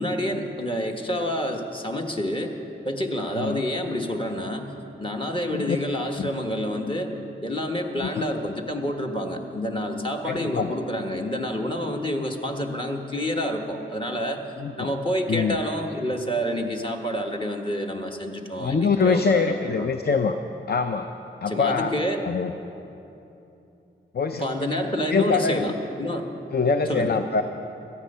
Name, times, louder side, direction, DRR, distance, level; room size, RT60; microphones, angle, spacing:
voice 1, 0.0-2.5 2.8-4.7 5.0-7.1 7.4-14.4 14.8-19.9 21.5-22.2 24.3-26.3 26.9-27.2, equal, 25° left, 2 dB, 1.5 m, -28 dB
voice 2, 10.3-10.8 14.6-14.9 15.3-15.6 18.6-20.4 20.7-21.1 21.4-21.9 22.2-22.5 24.1-24.5 25.1-25.6 26.5-27.4, left 5 dB, 50° left, 7 dB, 0.6 m, -24 dB
17.5 x 13.0 x 5.6 m, 2.9 s
wide cardioid pair, 80°, 20 cm